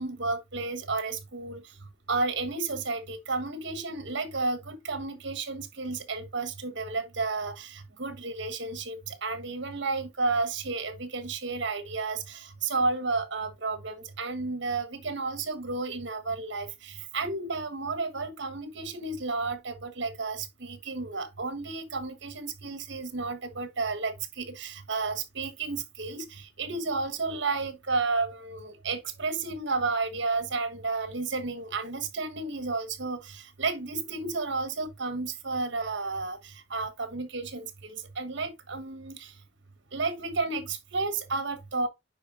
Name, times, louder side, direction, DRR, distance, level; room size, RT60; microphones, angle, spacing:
voice 1, 0.0-1.6 2.1-26.3 26.6-36.4 36.7-37.7 38.2-39.2 39.9-41.9, right 3 dB, 65° right, 1.4 m, -32 dB
9.7 x 4.5 x 2.5 m
head